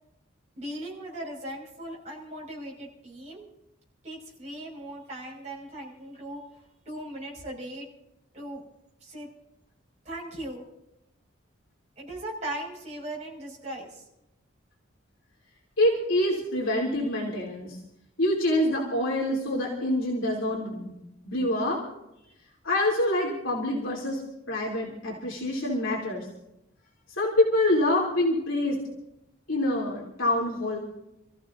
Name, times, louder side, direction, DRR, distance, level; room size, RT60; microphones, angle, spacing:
voice 1, 0.6-3.5 4.0-6.4 6.9-7.9 8.3-8.6 9.0-9.3 10.0-10.6 12.0-14.0, right 1 dB, 35° right, -4 dB, 5.6 m, -38 dB
voice 2, 15.8-17.8 18.2-21.0 21.2-21.8 22.6-24.2 24.5-26.3 27.2-28.8 29.5-30.8, left 1 dB, 80° left, -4 dB, 3.2 m, -26 dB
29.0 x 14.5 x 2.7 m, 0.87 s
head